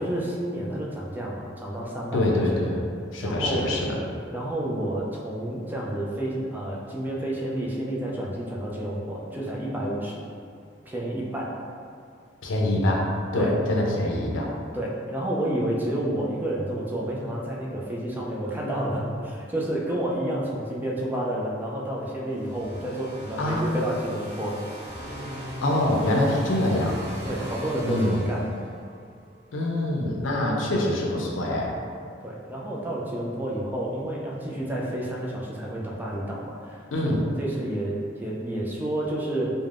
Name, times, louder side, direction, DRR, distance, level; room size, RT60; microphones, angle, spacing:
voice 1, 0.0-2.6 3.2-3.7 4.3-10.3 10.9-11.5 13.4-13.6 14.7-24.6 27.2-28.5 32.2-36.8 37.2-39.5, right 1 dB, 10° right, -4 dB, 0.3 m, -30 dB
voice 2, 2.1-2.8 3.1-3.9 12.4-13.1 13.3-14.5 23.4-23.7 25.6-27.0 27.9-28.2 29.5-31.7 36.9-37.2, left 1 dB, 90° left, -1 dB, 0.5 m, -24 dB
sound 1, 22.3-29.0, equal, 55° right, 0.6 m, -38 dB
2.4 x 2.1 x 3.2 m, 2.3 s
head